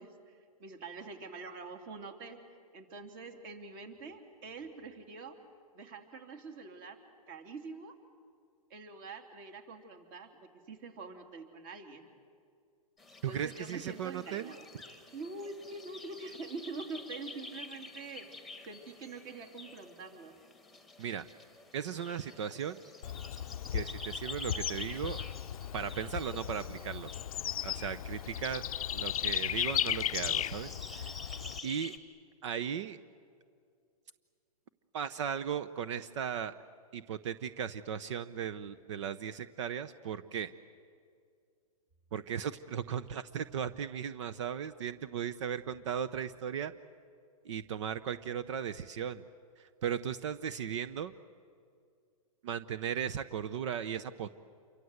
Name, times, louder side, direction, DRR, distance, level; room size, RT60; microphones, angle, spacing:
voice 1, 0.0-2.4 2.7-5.4 5.7-7.0 7.3-7.9 8.7-12.0 13.3-14.7 15.1-18.3 18.7-20.3, right 3 dB, 35° right, 6 dB, 3.2 m, -45 dB
sound 1, 13.0-32.0, left 3 dB, ahead, 1.6 m, -49 dB
voice 2, 13.2-14.5 21.0-21.2 21.7-22.8 23.7-25.2 25.7-27.1 27.6-28.6 28.9-31.1 31.6-32.0 32.4-33.0 34.9-36.5 36.9-40.5 42.1-46.7 47.4-49.2 49.6-51.1 52.4-54.3, right 8 dB, 55° right, 13 dB, 0.8 m, -37 dB
Bird / Insect, 23.0-31.6, left 10 dB, 70° left, 0.6 m, -36 dB
28.0 x 24.0 x 8.0 m, 2.2 s
hypercardioid pair, 150°, 19 cm